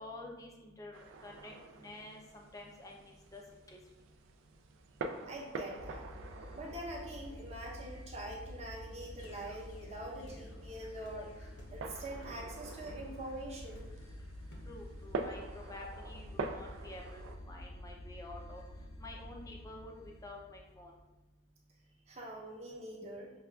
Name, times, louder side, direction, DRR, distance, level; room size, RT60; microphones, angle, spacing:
voice 1, 0.0-3.4 3.7-3.8 14.7-18.6 19.0-20.9, left 2 dB, 15° left, 0 dB, 0.3 m, -49 dB
sound 1, 0.9-17.4, right 3 dB, 65° right, 0.3 m, -47 dB
voice 2, 5.3-6.1 6.5-13.9 22.1-23.3, right 1 dB, 30° right, -2 dB, 0.6 m, -44 dB
sound 2, 5.7-21.1, left 1 dB, 90° left, 0.7 m, -49 dB
sound 3, 9.2-9.4 10.3-10.5 11.0-11.2 11.6-11.8 12.2-12.5 12.9-13.1 13.7-14.1 14.5-14.8, equal, 55° left, 0.7 m, -55 dB
5.8 x 2.3 x 2.3 m, 1.1 s
head